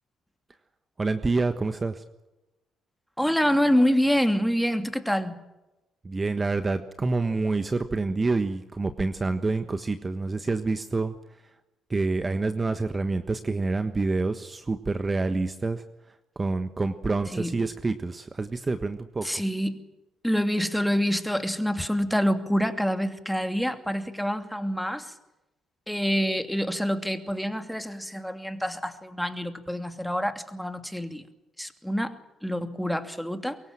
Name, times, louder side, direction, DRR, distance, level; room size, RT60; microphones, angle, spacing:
voice 1, 1.0-2.0 6.0-11.2 11.9-15.8 16.3-19.4, right 3 dB, 30° right, 9 dB, 1.4 m, -27 dB
voice 2, 3.2-5.4 17.3-17.6 19.2-19.8 20.2-25.1 25.9-31.2 31.6-32.1 32.4-33.6, equal, ahead, 7 dB, 2.7 m, -26 dB
24.0 x 22.5 x 7.6 m, 1.0 s
hypercardioid pair, 50°, 0 cm